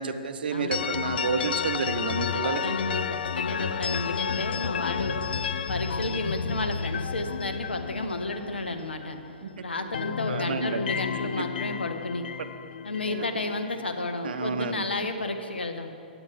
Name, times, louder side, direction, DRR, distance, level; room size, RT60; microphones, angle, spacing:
voice 1, 0.0-2.8 9.4-9.5 10.3-10.8 11.4-11.5 12.4-12.5 13.1-13.3 14.2-14.9, right 5 dB, 65° right, 9 dB, 0.7 m, -30 dB
sound 1, 0.7-9.4 9.7-13.8, left 7 dB, 65° left, 0.3 m, -32 dB
voice 2, 2.3-5.2 5.7-9.2 9.6-12.3 12.8-15.9, left 2 dB, 85° left, 6 dB, 0.9 m, -32 dB
8.9 x 8.1 x 5.0 m, 2.6 s
figure-of-eight pair, 120°, 6 cm